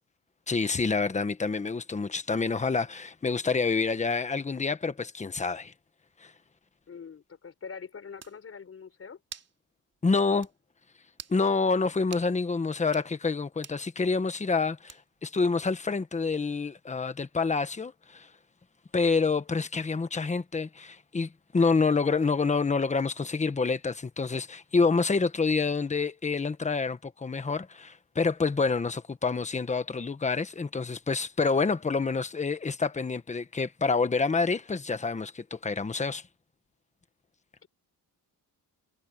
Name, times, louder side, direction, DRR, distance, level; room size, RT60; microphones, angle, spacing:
voice 1, 0.5-5.7 6.2-6.3 10.0-10.5 11.3-18.3 18.9-36.2, left 4 dB, 20° left, 1.2 m, -27 dB
voice 2, 6.9-9.2 37.6-37.7, left 6 dB, 35° left, 4.6 m, -44 dB
sound 1, 7.7-7.8 8.2-8.4 9.3-9.6 9.9-10.0 10.4-10.6 11.1-11.4 12.1-12.3 12.8-13.1 13.6-13.8 14.9-15.2, right 6 dB, 40° right, 2.9 m, -45 dB
cardioid pair, 145°, 39 cm